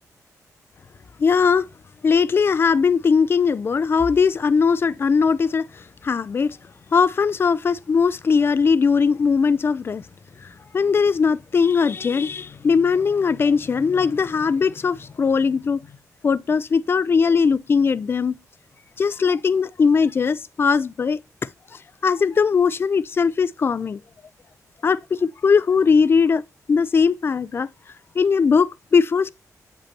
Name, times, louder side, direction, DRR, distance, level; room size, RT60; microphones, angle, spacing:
voice 1, 1.2-1.7 2.0-6.6 6.9-10.0 10.4-15.9 16.2-18.4 19.0-21.2 22.0-24.0 24.8-26.4 26.7-27.7 28.2-29.3, left 5 dB, 40° left, 0.4 m, -19 dB
8.5 x 5.2 x 2.9 m
wide cardioid pair, 125°, 6 cm